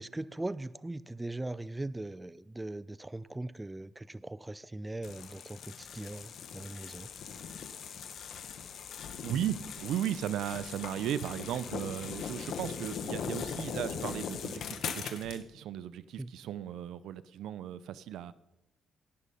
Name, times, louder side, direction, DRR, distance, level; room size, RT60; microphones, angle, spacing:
voice 1, 0.0-7.1 16.2-16.3, right 2 dB, 15° right, 0.4 m, -40 dB
sound 1, 5.0-15.4, left 7 dB, 70° left, 1.2 m, -40 dB
voice 2, 9.2-18.3, right 10 dB, 80° right, 0.5 m, -36 dB
18.5 x 6.4 x 5.6 m
cardioid pair, 90°, 0 cm